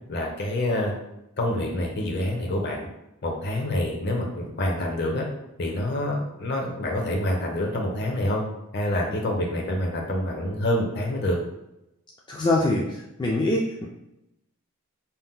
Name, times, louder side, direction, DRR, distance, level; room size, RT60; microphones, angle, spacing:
voice 1, 0.1-1.0 1.4-2.9 3.2-5.3 5.6-8.4 8.7-11.4, left 1 dB, 50° left, 0 dB, 0.7 m, -27 dB
voice 2, 12.3-13.9, left 2 dB, 20° left, -4 dB, 0.3 m, -24 dB
2.7 x 2.1 x 3.6 m, 0.89 s
head